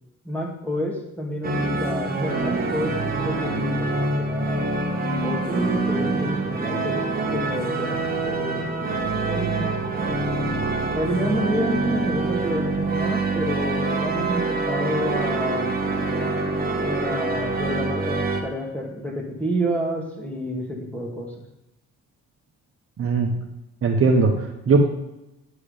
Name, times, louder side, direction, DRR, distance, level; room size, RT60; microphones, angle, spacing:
voice 1, 0.2-4.7 5.2-7.0 7.3-8.7 9.3-10.2 10.9-15.7 16.8-21.3, equal, 5° left, -1 dB, 2.3 m, -29 dB
sound 1, 1.4-18.4, right 3 dB, 30° right, 1.5 m, -25 dB
voice 2, 23.0-23.3 23.8-24.8, right 4 dB, 45° right, 2 dB, 1.2 m, -19 dB
10.5 x 4.9 x 5.1 m, 0.93 s
cardioid pair, 90°, 30 cm